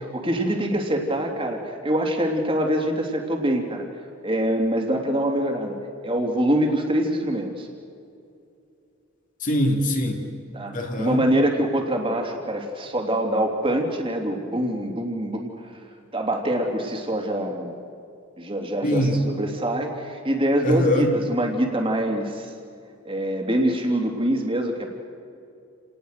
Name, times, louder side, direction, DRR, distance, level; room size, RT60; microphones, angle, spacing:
voice 1, 0.0-3.8 4.2-5.8 6.0-7.7 10.5-15.5 16.1-17.7 18.4-22.5 23.0-24.9, right 1 dB, 25° right, 2 dB, 2.9 m, -24 dB
voice 2, 9.4-10.2 10.7-11.2 18.8-19.2 20.6-21.1, equal, 35° left, 3 dB, 2.7 m, -22 dB
29.0 x 19.5 x 6.6 m, 2.6 s
head